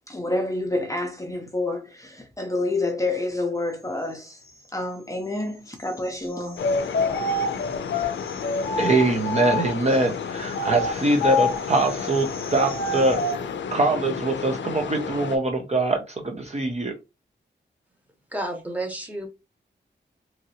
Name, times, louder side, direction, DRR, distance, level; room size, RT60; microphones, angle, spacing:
voice 1, 0.1-4.4 4.7-6.6, left 2 dB, 15° left, 0.5 m, -28 dB
sound 1, 6.6-15.4, left 6 dB, 85° left, 0.4 m, -32 dB
sound 2, 6.6-10.0 10.5-13.4, left 3 dB, 50° left, 0.7 m, -27 dB
voice 2, 8.8-13.2 13.7-16.9, right 2 dB, 35° right, 0.6 m, -23 dB
voice 3, 18.3-19.3, right 1 dB, 10° right, 0.9 m, -30 dB
3.0 x 2.7 x 2.7 m
wide cardioid pair, 135°, 19 cm